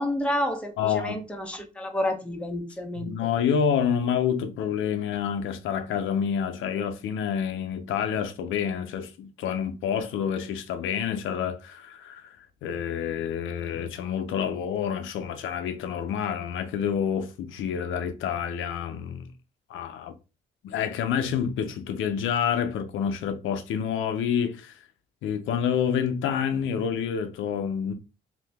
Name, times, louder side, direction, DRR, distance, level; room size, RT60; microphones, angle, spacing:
voice 1, 0.0-3.1, left 1 dB, 5° left, 0.8 m, -29 dB
voice 2, 0.8-1.2 3.0-19.3 19.7-20.1 20.6-24.8 25.2-27.9, left 8 dB, 80° left, 0.5 m, -28 dB
2.7 x 2.7 x 3.3 m
cardioid pair, 90°, 20 cm